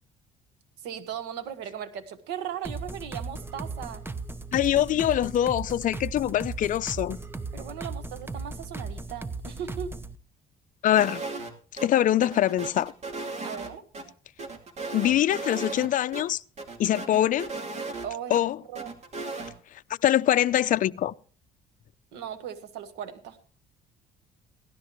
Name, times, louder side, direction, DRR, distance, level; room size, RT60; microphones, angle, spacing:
voice 1, 0.8-4.0 7.5-9.9 13.4-13.8 18.0-18.4 18.7-18.9 22.1-23.4, right 9 dB, 90° right, 1.6 m, -37 dB
sound 1, 2.6-10.2, right 3 dB, 15° right, 0.8 m, -37 dB
voice 2, 4.5-7.2 10.8-11.3 11.8-12.9 14.9-16.4 16.8-17.5 18.3-18.6 20.0-21.1, left 12 dB, 50° left, 0.5 m, -23 dB
sound 2, 10.9-11.5 11.8-11.9 12.2-14.0 14.4-15.9 16.1-16.2 16.6-18.4 18.7-19.5, right 3 dB, 40° right, 2.5 m, -36 dB
17.0 x 13.0 x 3.1 m
cardioid pair, 110°, 17 cm